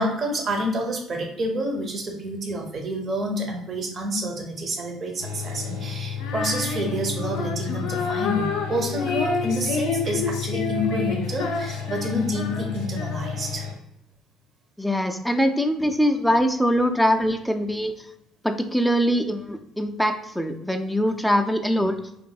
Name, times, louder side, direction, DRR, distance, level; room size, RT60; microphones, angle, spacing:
voice 1, 0.0-13.7, equal, 45° right, 3 dB, 0.7 m, -28 dB
sound 1, 5.2-13.7, left 7 dB, 85° right, 0.5 m, -32 dB
Female singing, 6.2-13.6, left 4 dB, 70° left, 0.4 m, -30 dB
voice 2, 14.8-18.1 18.4-22.0, equal, ahead, 4 dB, 0.4 m, -23 dB
3.0 x 2.6 x 2.3 m, 0.79 s
hypercardioid pair, 60°, 0 cm